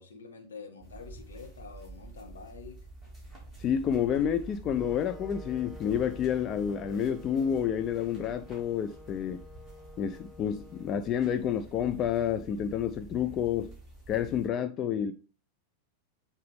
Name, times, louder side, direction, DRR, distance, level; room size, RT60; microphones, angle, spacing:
voice 1, 0.0-2.9, left 5 dB, 70° left, 1.2 m, -47 dB
sound 1, 0.8-14.5, right 2 dB, 10° left, 3.4 m, -48 dB
voice 2, 3.6-9.4 10.0-13.7 14.1-15.1, left 9 dB, 30° left, 0.4 m, -29 dB
Wind instrument woodwind instrument, 4.8-12.7, left 2 dB, 5° right, 0.8 m, -52 dB
7.7 x 4.2 x 3.4 m
figure-of-eight pair, 90°, 0 cm